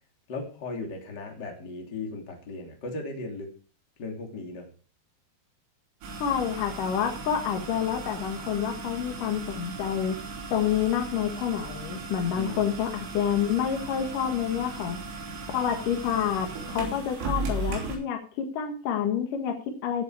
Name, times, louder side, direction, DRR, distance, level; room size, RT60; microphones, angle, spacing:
voice 1, 0.3-3.5 4.0-4.7 12.2-12.7, left 3 dB, 25° left, 2 dB, 2.5 m, -37 dB
sound 1, 6.0-18.0, right 3 dB, 85° right, 5.9 m, -37 dB
voice 2, 6.2-10.2 10.5-15.0 15.5-20.0, left 8 dB, 65° left, 4 dB, 2.2 m, -28 dB
16.5 x 7.9 x 4.8 m, 0.39 s
omnidirectional pair, 5.8 m